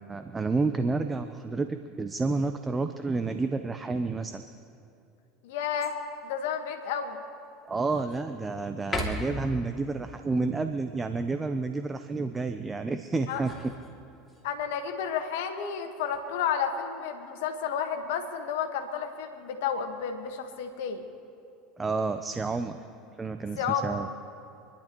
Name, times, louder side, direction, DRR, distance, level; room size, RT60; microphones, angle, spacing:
voice 1, 0.0-4.4 7.7-13.5 21.8-22.8 23.2-24.1, right 3 dB, 20° right, 8 dB, 0.8 m, -30 dB
voice 2, 5.4-6.0 6.2-7.2 13.3-13.4 14.4-21.0 23.6-24.0, left 7 dB, 75° left, 6 dB, 1.5 m, -31 dB
sound 1, 5.8-6.3 6.8-6.9 7.5-8.3 8.8-9.6 13.0-14.4 15.8-16.3, left 1 dB, 20° left, 2.6 m, -37 dB
28.0 x 11.5 x 3.1 m, 2.6 s
hypercardioid pair, 85°, 0 cm